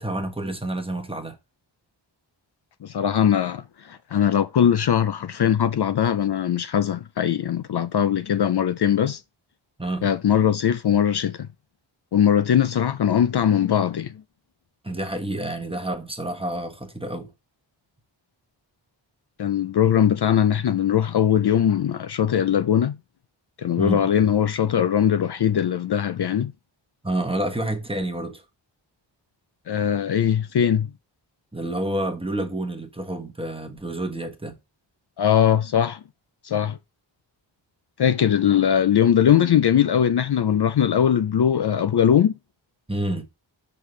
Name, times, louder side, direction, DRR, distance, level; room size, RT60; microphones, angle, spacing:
voice 1, 0.0-1.4 9.8-10.1 14.8-17.3 23.8-24.1 27.0-28.4 31.5-34.5 42.9-43.2, right 1 dB, 10° right, 1.2 m, -29 dB
voice 2, 2.8-9.2 10.0-11.5 12.1-14.2 19.4-23.0 23.6-26.5 29.7-30.9 35.2-36.0 36.4-36.8 38.0-42.3, left 9 dB, 60° left, 0.5 m, -20 dB
5.6 x 5.4 x 3.2 m
wide cardioid pair, 75°, 47 cm